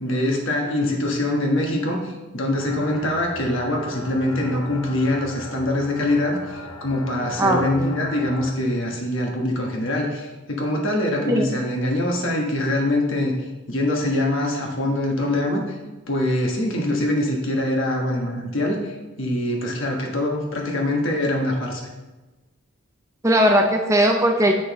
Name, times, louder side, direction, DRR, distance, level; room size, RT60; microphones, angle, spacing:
voice 1, 0.0-13.3 13.7-15.8 16.1-21.9, left 1 dB, 60° left, 1 dB, 1.3 m, -24 dB
sound 1, 2.5-8.5, left 2 dB, 85° left, 1.0 m, -38 dB
voice 2, 7.4-7.9 11.3-11.5 23.2-24.5, equal, 15° right, 2 dB, 0.5 m, -18 dB
8.5 x 6.1 x 3.1 m, 1.1 s
head